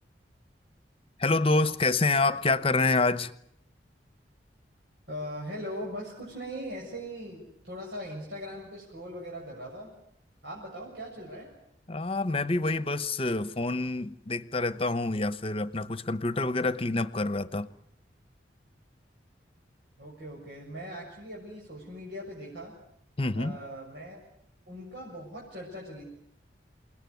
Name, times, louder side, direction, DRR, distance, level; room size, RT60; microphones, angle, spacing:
voice 1, 1.2-3.3 11.9-17.7 23.2-23.6, left 3 dB, 30° left, 14 dB, 1.0 m, -27 dB
voice 2, 5.1-9.9 10.4-11.5 20.0-22.7 23.3-24.2 24.7-26.1, equal, 75° right, -3 dB, 7.0 m, -40 dB
29.0 x 19.5 x 9.5 m, 0.73 s
head